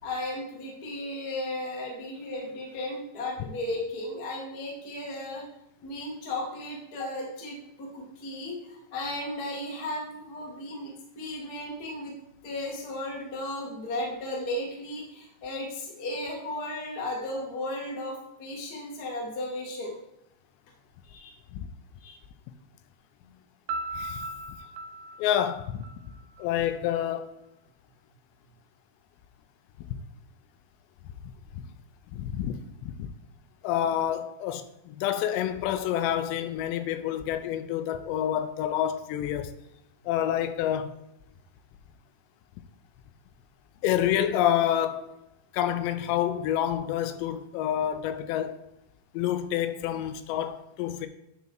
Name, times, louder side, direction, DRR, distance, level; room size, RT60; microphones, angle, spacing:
voice 1, 0.0-5.5 5.8-12.1 12.4-19.9 21.1-21.3 22.0-22.2 23.2-23.3, left 1 dB, 60° left, 0.9 m, -35 dB
Piano, 23.7-26.5, right 2 dB, 85° right, 2.8 m, -37 dB
voice 2, 24.0-24.3 25.2-25.8 26.4-27.3 31.5-31.6 32.1-32.6 32.8-33.1 33.6-39.5 40.1-40.9 43.8-45.2 45.5-48.6 49.1-51.1, left 11 dB, 85° left, 2.7 m, -28 dB
9.3 x 4.1 x 4.5 m
omnidirectional pair, 5.0 m